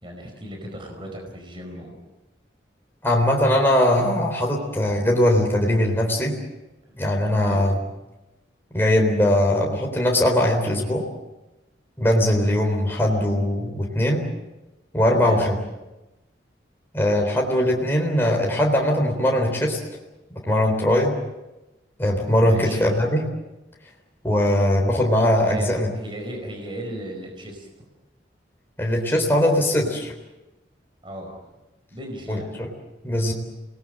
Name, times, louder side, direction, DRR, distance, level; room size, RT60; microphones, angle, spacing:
voice 1, 0.0-2.0 6.9-7.0 7.4-7.8 15.1-15.5 22.4-22.8 25.4-25.7 25.9-27.8 31.0-31.4 31.9-32.5, right 1 dB, 25° right, 2 dB, 4.8 m, -36 dB
voice 2, 3.0-6.4 7.0-7.8 8.7-11.0 12.0-14.2 14.9-15.6 16.9-19.8 20.5-21.2 22.0-23.3 24.2-25.9 28.8-30.1 32.3-32.7 33.0-33.3, left 1 dB, 10° left, 0 dB, 3.8 m, -20 dB
28.5 x 20.0 x 7.7 m, 1.0 s
head